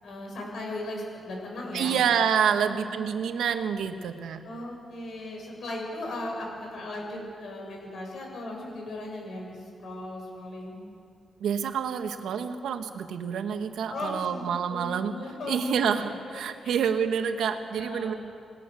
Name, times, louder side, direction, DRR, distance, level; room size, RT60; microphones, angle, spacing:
voice 1, 0.0-2.0 2.5-3.5 4.4-10.8 13.9-15.8 16.1-16.2 16.6-16.8 17.7-18.1, left 1 dB, 55° left, 0 dB, 7.5 m, -37 dB
voice 2, 1.7-4.4 11.4-15.1 15.5-18.1, right 7 dB, 80° right, 6 dB, 1.6 m, -27 dB
27.5 x 20.0 x 7.0 m, 2.3 s
wide cardioid pair, 150°, 0 cm